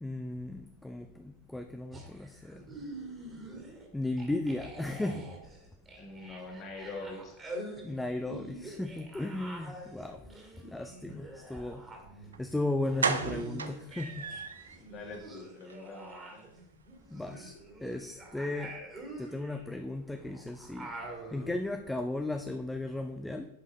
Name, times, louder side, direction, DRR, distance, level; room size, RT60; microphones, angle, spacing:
voice 1, 0.0-2.6 3.9-5.3 7.8-10.2 10.6-11.8 12.4-14.3 17.1-17.5 17.8-18.7 19.2-20.9 21.3-23.5, left 2 dB, 5° left, 6 dB, 0.4 m, -35 dB
sound 1, 1.9-3.9 4.2-14.4 14.7-21.5, right 2 dB, 15° right, 2.0 m, -46 dB
voice 2, 6.0-8.0 14.7-16.5, left 3 dB, 35° left, 2 dB, 1.7 m, -45 dB
sound 2, 12.3-12.4 13.0-14.8 15.1-15.2 15.6-15.8 16.0-16.1, right 5 dB, 70° right, 0.6 m, -33 dB
10.0 x 5.4 x 3.2 m, 0.85 s
figure-of-eight pair, 90°, 0 cm